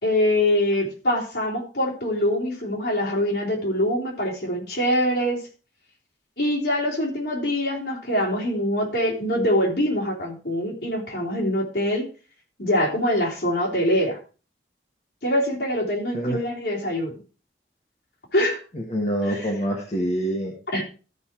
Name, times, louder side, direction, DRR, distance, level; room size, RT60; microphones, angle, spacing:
voice 1, 0.0-5.4 6.4-12.1 12.6-14.2 15.2-17.2 18.3-18.6 19.3-19.5 20.7-20.8, left 1 dB, 70° left, -3 dB, 3.5 m, -24 dB
voice 2, 18.7-20.5, right 1 dB, 40° left, 1 dB, 1.5 m, -26 dB
13.5 x 5.4 x 4.5 m, 0.35 s
head